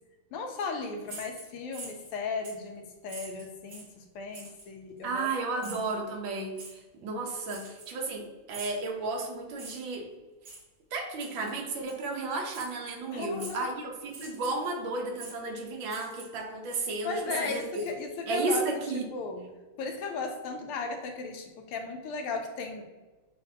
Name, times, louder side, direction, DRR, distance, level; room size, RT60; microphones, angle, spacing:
voice 1, 0.3-5.3 5.6-5.8 13.1-13.7 17.0-18.7 18.9-19.5 19.8-22.8, left 4 dB, 80° left, 4 dB, 1.6 m, -36 dB
sound 1, 1.0-2.1 2.4-2.7 3.1-3.9 4.3-4.7 5.6-5.9 6.6-6.7 7.5-8.2 8.5-8.8 9.6-9.9 10.4-10.6 11.2-11.5 11.9-12.0 12.5-12.7 13.4-13.7 14.1-14.7 15.2-15.4 15.9-16.4 16.7-18.2, right 3 dB, 50° right, 1.5 m, -45 dB
voice 2, 5.0-10.1 10.9-17.9 18.3-19.0, right 3 dB, 70° right, 1 dB, 1.4 m, -33 dB
7.5 x 2.5 x 2.6 m, 1.2 s
omnidirectional pair, 2.4 m